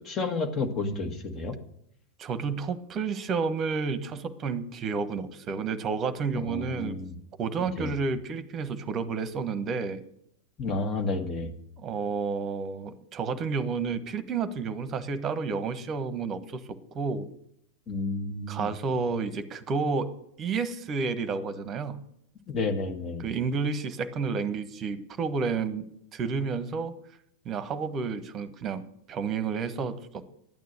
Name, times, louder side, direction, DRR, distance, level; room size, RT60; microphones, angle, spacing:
voice 1, 0.0-1.6 6.3-7.1 7.6-7.9 10.6-11.5 17.9-18.7 22.5-23.3, left 3 dB, 25° left, 5 dB, 1.7 m, -31 dB
voice 2, 2.2-7.0 7.4-10.0 11.8-17.3 18.5-22.0 23.2-25.9 26.1-26.9 27.4-30.2, right 5 dB, 30° right, 13 dB, 1.1 m, -31 dB
12.5 x 9.2 x 6.6 m, 0.73 s
figure-of-eight pair, 90°, 0 cm